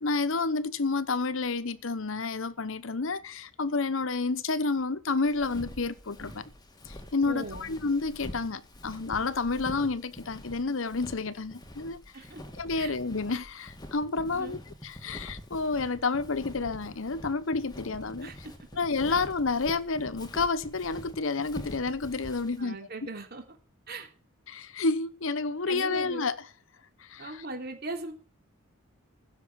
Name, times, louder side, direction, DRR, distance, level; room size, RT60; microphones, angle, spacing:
voice 1, 0.0-6.4 6.9-12.0 12.6-18.3 18.8-22.8 24.5-26.4 27.0-27.4, left 3 dB, 65° left, 0.9 m, -30 dB
Walk footsteps, 5.3-22.6, equal, 20° left, 1.9 m, -45 dB
voice 2, 7.3-7.7 12.1-12.4 12.8-12.9 14.3-14.6 18.2-18.5 22.6-23.6 23.9-24.1 25.7-26.2 27.2-28.1, right 2 dB, 50° right, 3.5 m, -39 dB
15.5 x 6.7 x 8.9 m
head